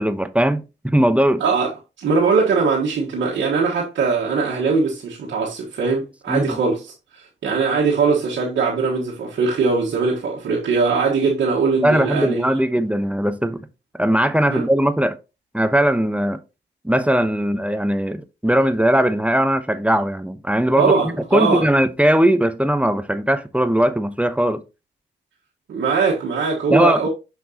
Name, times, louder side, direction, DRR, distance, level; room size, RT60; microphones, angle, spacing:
voice 1, 0.0-1.4 6.3-6.6 11.8-13.7 13.9-15.2 15.5-16.4 16.8-20.9 21.3-24.6 26.7-27.1, right 1 dB, 5° right, 0.9 m, -19 dB
voice 2, 2.0-6.8 7.1-12.5 14.5-14.6 20.8-21.7 25.7-27.1, right 4 dB, 85° right, 1.4 m, -20 dB
6.3 x 5.8 x 2.8 m
cardioid pair, 45°, 19 cm